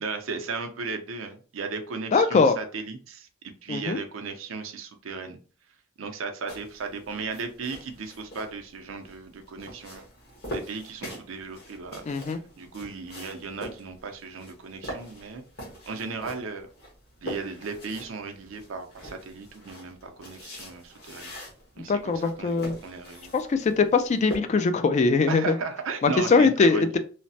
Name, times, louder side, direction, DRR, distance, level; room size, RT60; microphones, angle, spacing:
voice 1, 0.0-5.4 6.0-10.1 10.5-12.0 12.6-15.4 15.9-16.7 17.2-21.3 21.8-23.3 24.5-24.7 25.3-26.9, right 4 dB, 85° right, 5 dB, 0.5 m, -36 dB
voice 2, 2.1-2.6 3.7-4.0 12.1-12.4 21.9-22.7 23.3-25.5 26.0-27.0, left 4 dB, 35° left, 9 dB, 0.3 m, -22 dB
sound 1, 6.5-24.4, equal, 55° left, 1.2 m, -43 dB
3.1 x 2.0 x 2.7 m, 0.38 s
head